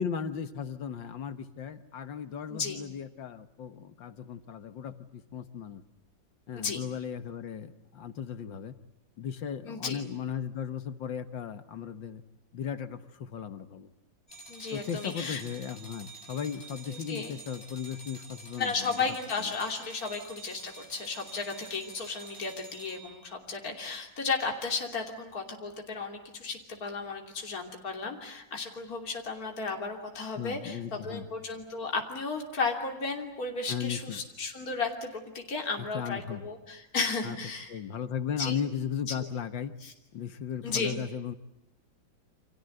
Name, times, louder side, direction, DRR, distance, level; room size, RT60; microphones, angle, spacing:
voice 1, 0.0-5.8 6.5-8.8 9.2-12.2 12.5-13.9 14.7-19.5 30.4-31.3 33.7-34.2 35.9-36.4 37.2-37.4 37.7-39.7 40.1-41.3, left 7 dB, 75° left, 10 dB, 2.0 m, -36 dB
voice 2, 2.5-2.8 6.6-6.8 9.6-10.0 14.5-15.4 16.9-17.3 18.6-37.8 38.4-38.6 39.8-39.9 40.6-41.0, left 4 dB, 50° left, 2 dB, 3.5 m, -34 dB
sound 1, 14.3-23.3, right 2 dB, 35° left, 5.5 m, -48 dB
29.0 x 25.5 x 7.9 m, 0.88 s
omnidirectional pair, 2.1 m